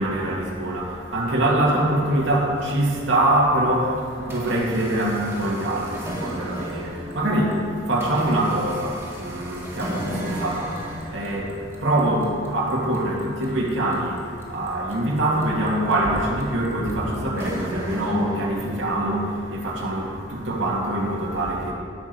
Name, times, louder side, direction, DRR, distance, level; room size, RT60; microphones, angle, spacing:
voice 1, 0.0-21.7, right 1 dB, 75° right, -3 dB, 2.2 m, -24 dB
sound 1, 2.6-3.5 4.0-19.0, equal, 15° right, 1.8 m, -36 dB
16.5 x 6.3 x 4.7 m, 2.2 s
head